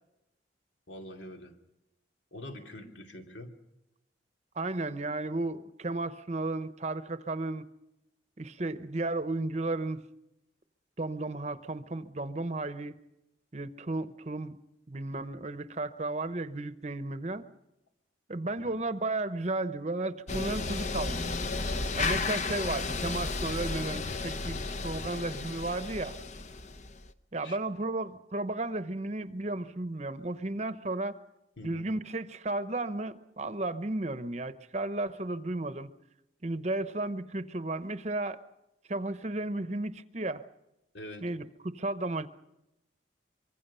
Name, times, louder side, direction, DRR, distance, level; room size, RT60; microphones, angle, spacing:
voice 1, 0.9-1.6 2.3-3.5 18.6-18.7 27.4-27.6 31.6-31.9 40.9-41.3, left 1 dB, 85° left, 3 dB, 2.7 m, -44 dB
voice 2, 4.5-7.6 8.4-10.0 11.0-13.0 13.5-14.6 14.9-17.5 18.3-21.3 22.0-26.2 27.3-31.2 31.6-35.9 36.4-38.4 38.9-40.4 41.2-42.3, right 2 dB, 35° right, 12 dB, 0.8 m, -34 dB
sound 1, 20.3-27.1, left 3 dB, 40° left, 0.8 m, -33 dB
24.5 x 23.5 x 5.6 m, 0.89 s
head